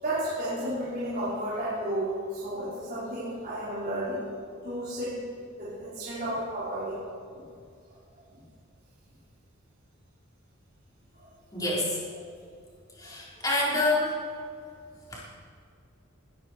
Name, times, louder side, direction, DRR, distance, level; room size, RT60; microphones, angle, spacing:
voice 1, 0.0-4.2 4.6-5.1 5.5-7.0 7.3-7.4 8.3-8.4 11.1-11.3 13.0-13.1, right 1 dB, 45° right, -12 dB, 5.1 m, -32 dB
voice 2, 11.5-12.0 13.0-14.1 15.1-15.2, left 2 dB, 20° left, -6 dB, 4.6 m, -27 dB
22.0 x 12.0 x 4.7 m, 2.3 s
head